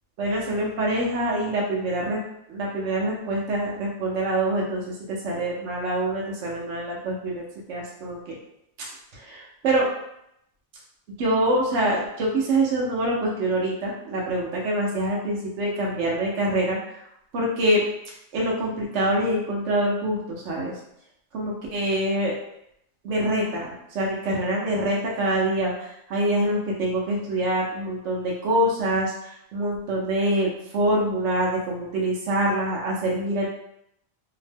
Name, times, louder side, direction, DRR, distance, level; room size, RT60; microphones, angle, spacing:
voice 1, 0.2-2.2 2.5-7.4 7.7-8.3 8.8-9.9 11.2-17.0 17.3-17.9 18.3-20.8 21.3-22.3 23.0-33.5, right 1 dB, 75° right, -3 dB, 1.0 m, -25 dB
2.7 x 2.1 x 3.3 m, 0.78 s
omnidirectional pair, 1.3 m